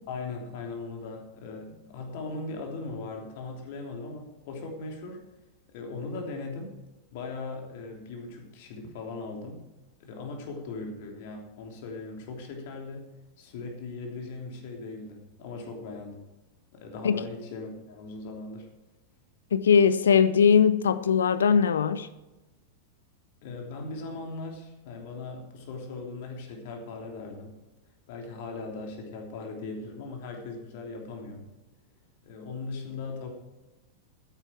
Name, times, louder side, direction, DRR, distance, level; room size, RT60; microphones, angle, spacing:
voice 1, 0.1-5.2 5.7-6.7 7.1-9.6 10.0-13.1 13.4-16.2 16.7-18.7 23.4-27.5 28.1-31.5 32.2-33.3, left 3 dB, 50° left, 3.2 m, -39 dB
voice 2, 19.5-22.1, left 7 dB, 65° left, 0.7 m, -20 dB
13.0 x 10.0 x 4.6 m
figure-of-eight pair, 90°, 0 cm